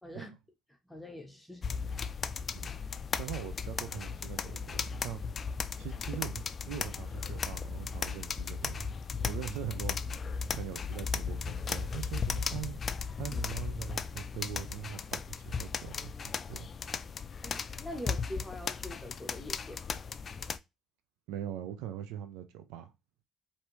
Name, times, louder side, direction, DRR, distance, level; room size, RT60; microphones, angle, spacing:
voice 1, 0.0-0.3 0.8-1.9 17.4-20.0, equal, 10° left, 1.1 m, -44 dB
sound 1, 1.6-20.6, left 5 dB, 45° left, 0.4 m, -36 dB
voice 2, 3.1-5.2 5.8-8.9 9.2-10.0 10.5-12.8 13.2-16.7 21.3-22.9, right 10 dB, 80° right, 0.6 m, -42 dB
4.6 x 2.8 x 3.1 m
supercardioid pair, 70°, 0 cm